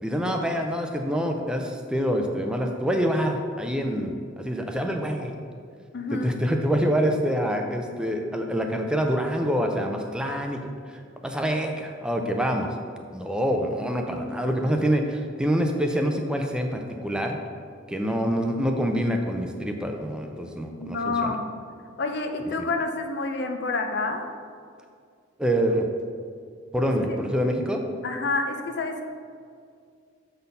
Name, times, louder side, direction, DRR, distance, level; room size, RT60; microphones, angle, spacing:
voice 1, 0.0-5.4 6.2-10.6 10.9-12.7 13.1-17.4 17.9-21.4 22.6-22.7 25.4-25.9 26.7-27.8, equal, 5° right, 3 dB, 0.4 m, -26 dB
voice 2, 5.9-6.3 20.8-21.4 22.0-24.2 27.1-27.2 28.0-29.1, left 3 dB, 60° left, 5 dB, 0.6 m, -28 dB
6.8 x 4.1 x 5.4 m, 2.2 s
head